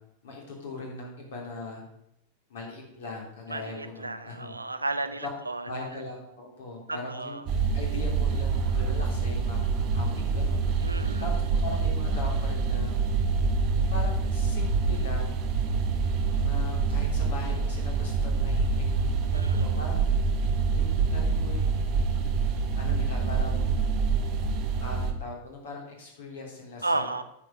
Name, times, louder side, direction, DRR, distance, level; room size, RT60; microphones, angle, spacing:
voice 1, 0.2-1.8 2.5-4.5 5.2-5.3 5.6-7.5 7.7-10.7 11.2-12.9 13.7-15.4 16.4-18.8 19.3-20.0 20.7-21.9 22.8-23.7 24.8-27.1, left 3 dB, 60° left, -1 dB, 3.2 m, -40 dB
voice 2, 3.5-6.0 6.9-7.4 10.8-11.3 19.3-19.7 26.8-27.2, right 2 dB, 80° right, 10 dB, 0.6 m, -33 dB
sound 1, 7.5-25.1, right 4 dB, 40° right, 1.1 m, -26 dB
9.6 x 4.9 x 6.5 m, 0.80 s
figure-of-eight pair, 90°, 0 cm